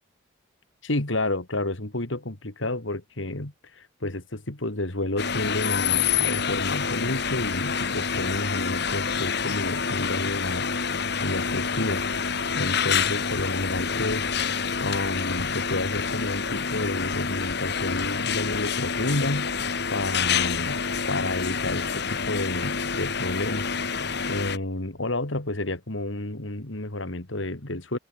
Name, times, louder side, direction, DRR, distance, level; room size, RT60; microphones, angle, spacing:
voice 1, 0.8-11.0 11.2-14.3 14.8-20.8 21.1-23.7 23.9-28.0, left 2 dB, 75° left, 2.7 m, -30 dB
sound 1, 5.2-24.6, left 6 dB, 55° left, 2.3 m, -27 dB
head